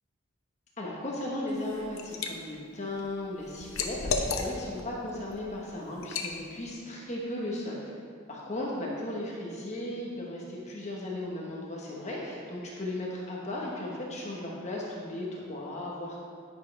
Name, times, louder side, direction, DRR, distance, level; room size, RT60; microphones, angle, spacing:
voice 1, 0.8-7.8 8.3-16.2, left 1 dB, 35° left, -4 dB, 1.4 m, -36 dB
Liquid, 1.5-2.3 2.7-4.8 5.3-5.5 6.0-6.3, left 4 dB, 85° left, 0.9 m, -33 dB
10.5 x 9.5 x 3.5 m, 2.2 s
head